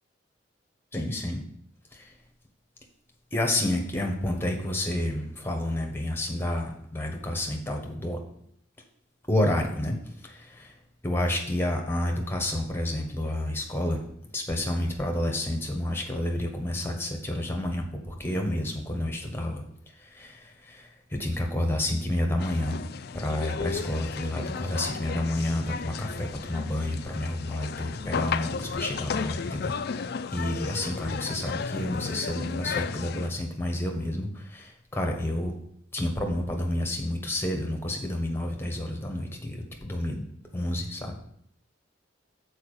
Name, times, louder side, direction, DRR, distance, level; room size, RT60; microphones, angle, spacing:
voice 1, 0.9-1.4 1.9-2.1 3.3-8.2 9.3-10.8 11.0-14.0 14.3-19.6 20.0-22.8 23.1-29.8 30.3-35.5 35.9-40.3 40.5-41.3, left 1 dB, 10° left, 2 dB, 1.2 m, -30 dB
sound 1, 22.4-33.3, left 6 dB, 55° left, 0.4 m, -34 dB
7.0 x 4.7 x 6.7 m, 0.70 s
head